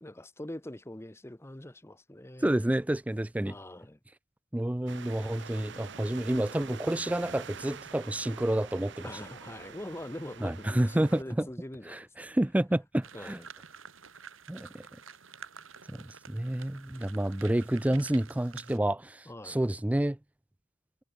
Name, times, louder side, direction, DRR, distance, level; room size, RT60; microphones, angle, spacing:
voice 1, 0.0-2.6 3.4-4.0 9.0-12.1 13.1-13.5 19.3-19.6, left 1 dB, 15° left, 0.9 m, -43 dB
voice 2, 2.4-3.5 4.5-9.1 10.4-11.5 11.9-13.4 14.5-14.8 15.9-20.2, right 1 dB, 5° right, 0.3 m, -29 dB
sound 1, 4.9-11.2, right 6 dB, 60° right, 0.9 m, -46 dB
sound 2, 13.0-18.8, right 7 dB, 85° right, 2.6 m, -50 dB
head